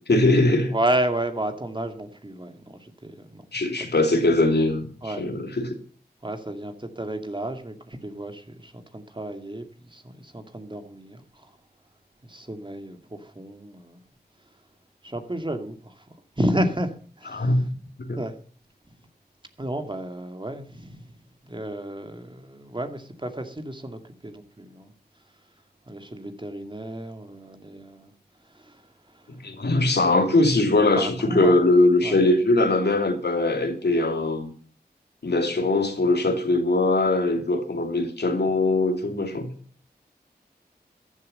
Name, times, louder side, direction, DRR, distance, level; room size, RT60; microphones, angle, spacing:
voice 1, 0.1-0.7 3.5-5.8 17.3-17.7 18.0-18.2 29.3-34.5 35.2-39.5, left 2 dB, 80° left, 2.9 m, -21 dB
voice 2, 0.7-3.5 3.8-3.9 5.0-5.2 6.2-11.5 12.2-14.0 15.0-16.0 16.4-17.5 18.2-18.4 19.6-21.1 21.5-24.9 25.9-28.1 28.5-28.8 29.1-29.2 31.0-31.6 32.0-32.2, right 1 dB, 30° right, 2.4 m, -32 dB
14.5 x 11.0 x 5.5 m
wide cardioid pair, 65°, 17 cm